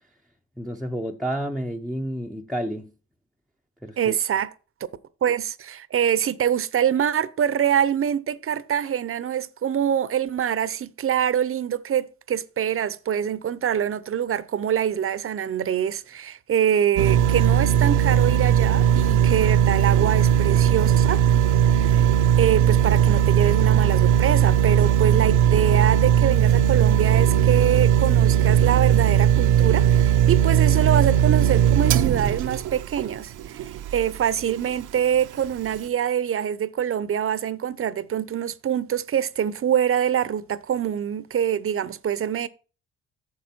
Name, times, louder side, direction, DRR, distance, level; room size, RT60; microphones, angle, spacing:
voice 1, 0.6-2.9 3.8-4.2, right 1 dB, ahead, 0.7 m, -30 dB
voice 2, 4.0-4.5 5.2-21.2 21.7-22.1 22.4-42.5, right 9 dB, 45° right, 0.7 m, -25 dB
sound 1, 17.0-34.2 34.6-34.7, right 10 dB, 85° right, 0.7 m, -18 dB
9.5 x 6.6 x 4.4 m
cardioid pair, 90°, 30 cm